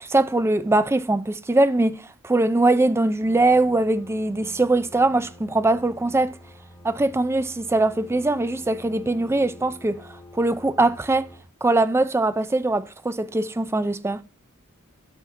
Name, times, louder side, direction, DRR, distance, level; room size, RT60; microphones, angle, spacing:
voice 1, 0.0-6.4 6.8-11.3 11.6-14.2, right 2 dB, 10° right, 0.4 m, -22 dB
sound 1, 3.2-11.4, left 1 dB, 15° left, 1.4 m, -47 dB
11.5 x 6.1 x 3.6 m
head